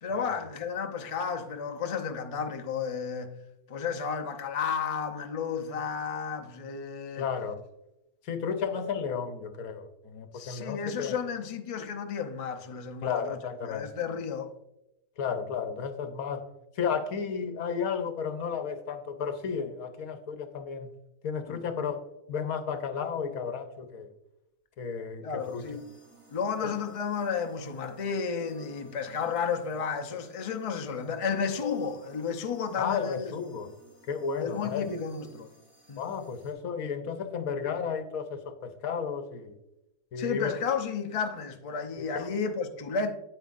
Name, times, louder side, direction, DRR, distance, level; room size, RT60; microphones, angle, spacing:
voice 1, 0.0-3.3 3.7-7.3 10.3-13.4 13.7-14.5 21.5-21.6 25.2-25.9 26.3-33.3 34.4-35.5 35.9-36.1 40.2-43.1, left 6 dB, 40° left, 0.5 m, -32 dB
voice 2, 7.2-7.6 8.2-11.2 13.0-13.9 15.2-16.5 16.8-20.9 21.2-24.1 24.8-25.6 26.6-26.7 32.8-33.8 34.1-34.9 36.0-39.5 40.1-40.6 42.0-42.3, left 6 dB, 70° left, 1.2 m, -33 dB
sound 1, 25.4-36.5, right 1 dB, 20° right, 1.9 m, -57 dB
9.0 x 9.0 x 2.5 m
omnidirectional pair, 1.6 m